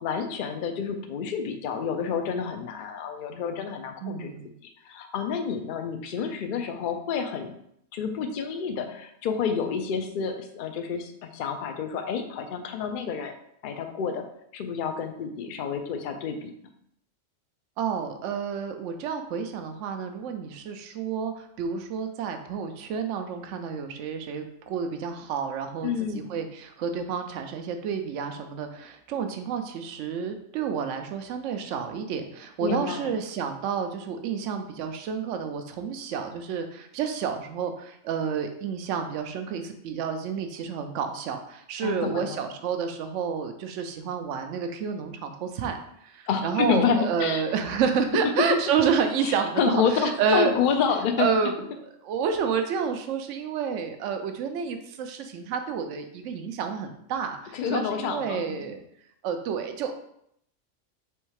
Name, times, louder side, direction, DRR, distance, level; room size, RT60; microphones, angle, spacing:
voice 1, 0.0-4.3 4.9-7.5 7.9-13.3 13.6-14.2 14.5-16.5 25.8-26.3 32.6-33.2 41.8-42.4 46.3-47.4 48.5-48.6 49.2-51.3 57.5-58.5, left 6 dB, 55° left, 6 dB, 0.6 m, -29 dB
voice 2, 4.0-4.5 17.8-50.6 51.2-51.5 52.0-58.8 59.2-60.1, right 6 dB, 75° right, 6 dB, 0.9 m, -30 dB
3.5 x 3.1 x 4.7 m, 0.72 s
omnidirectional pair, 1.3 m